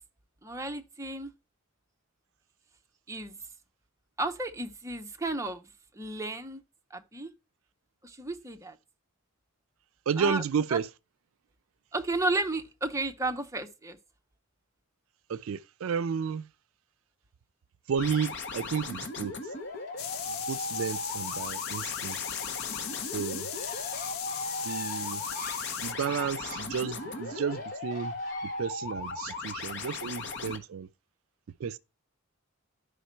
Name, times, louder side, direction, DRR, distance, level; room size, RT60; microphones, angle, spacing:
voice 1, 0.4-1.3 3.1-3.4 4.2-6.6 6.9-7.3 8.0-8.8 10.2-10.4 10.7-10.8 11.9-14.0, right 2 dB, 15° right, 0.6 m, -33 dB
voice 2, 10.1-10.9 15.3-16.5 17.9-19.3 20.3-22.2 23.1-23.5 24.6-25.2 25.8-28.1 28.4-30.9 31.6-31.8, right 6 dB, 70° right, 0.4 m, -32 dB
sound 1, 18.0-30.6, left 3 dB, 55° left, 1.2 m, -37 dB
Bird, 19.5-28.7, left 2 dB, 40° left, 3.0 m, -46 dB
sound 2, 20.0-25.9, left 10 dB, 80° left, 0.6 m, -38 dB
11.5 x 5.1 x 4.3 m
head